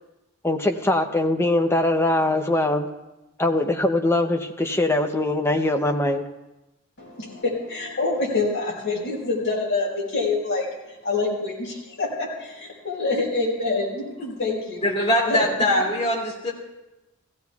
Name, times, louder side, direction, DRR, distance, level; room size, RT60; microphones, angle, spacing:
voice 1, 0.4-2.9 3.4-6.2, left 1 dB, 10° left, 4 dB, 0.6 m, -22 dB
voice 2, 7.0-14.9 15.2-15.4, left 3 dB, 55° left, -4 dB, 4.6 m, -26 dB
voice 3, 14.8-16.5, left 1 dB, 25° left, -4 dB, 2.6 m, -22 dB
16.0 x 16.0 x 2.4 m, 1.0 s
head